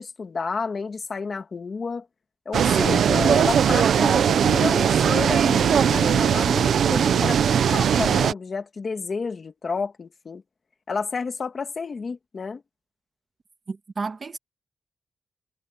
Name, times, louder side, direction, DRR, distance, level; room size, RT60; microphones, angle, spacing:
voice 1, 0.0-2.1 2.5-10.4 10.9-12.6, left 5 dB, 40° left, 2.3 m, -30 dB
sound 1, 2.5-8.3, right 8 dB, 80° right, 0.8 m, -19 dB
voice 2, 13.7-14.4, right 4 dB, 35° right, 1.6 m, -32 dB
wide cardioid pair, 175°, 0 cm